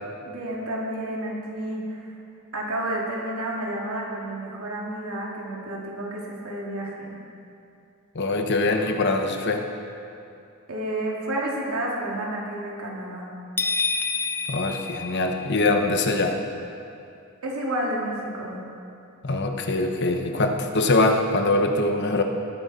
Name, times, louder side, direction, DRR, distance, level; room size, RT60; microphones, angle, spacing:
voice 1, 0.2-2.2 2.5-7.2 10.7-13.3 17.4-18.6, right 1 dB, 85° right, -3 dB, 2.5 m, -30 dB
voice 2, 8.1-9.7 14.5-16.4 19.2-22.2, left 2 dB, 55° left, 4 dB, 1.0 m, -23 dB
sound 1, 13.6-15.7, left 4 dB, 10° left, 0.5 m, -28 dB
19.0 x 8.9 x 4.3 m, 2.6 s
head